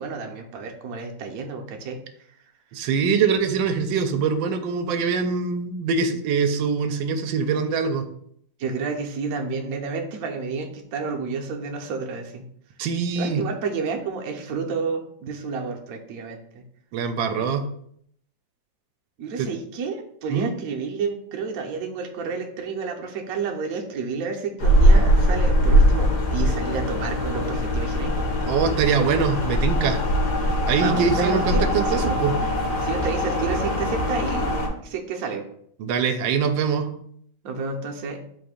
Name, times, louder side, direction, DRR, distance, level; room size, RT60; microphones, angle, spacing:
voice 1, 0.0-2.0 8.6-12.4 13.2-16.6 19.2-28.5 30.8-32.2 32.8-34.5 34.8-35.4 37.4-38.2, right 5 dB, 65° right, 2 dB, 1.0 m, -30 dB
voice 2, 2.7-8.0 12.8-13.4 16.9-17.6 19.4-19.5 20.3-20.5 28.5-30.0 30.7-32.3 35.8-36.9, right 5 dB, 85° right, 7 dB, 1.3 m, -23 dB
sound 1, 24.6-34.7, equal, 65° left, 1.4 m, -21 dB
4.2 x 2.6 x 4.8 m, 0.68 s
omnidirectional pair, 2.0 m